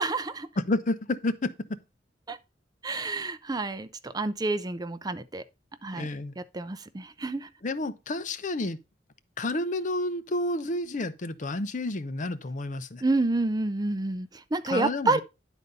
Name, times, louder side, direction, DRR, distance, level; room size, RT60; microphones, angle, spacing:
voice 1, 0.0-0.5 2.3-2.4 2.8-5.4 5.8-6.1 6.4-7.5 13.0-15.2, right 2 dB, 20° right, 0.5 m, -29 dB
voice 2, 0.6-1.8 5.9-6.4 7.6-8.8 9.4-13.0 14.7-15.2, left 2 dB, 45° left, 0.7 m, -30 dB
10.5 x 4.1 x 5.3 m
head